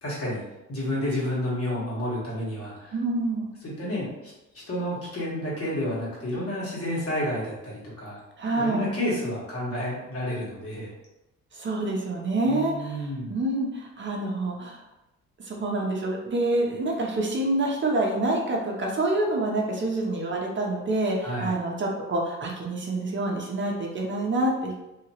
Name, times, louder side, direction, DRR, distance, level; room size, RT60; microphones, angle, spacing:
voice 1, 0.0-3.0 3.6-8.2 8.5-10.9 12.4-13.3 21.2-21.5, equal, 50° left, -6 dB, 1.5 m, -30 dB
voice 2, 2.9-3.4 8.4-8.9 11.5-14.8 15.4-24.8, right 2 dB, 40° right, -1 dB, 0.7 m, -27 dB
2.8 x 2.8 x 2.9 m, 0.97 s
cardioid pair, 90°, 30 cm